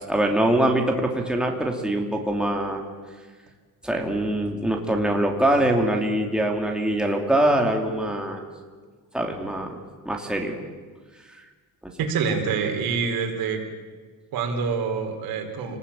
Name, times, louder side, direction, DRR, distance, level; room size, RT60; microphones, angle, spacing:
voice 1, 0.1-2.8 3.8-8.4 9.1-9.8 10.0-10.6, right 1 dB, ahead, 1 dB, 2.6 m, -23 dB
voice 2, 12.0-13.6 14.3-15.8, right 5 dB, 90° right, 4 dB, 4.4 m, -26 dB
28.0 x 20.0 x 8.8 m, 1.5 s
cardioid pair, 170°, 35 cm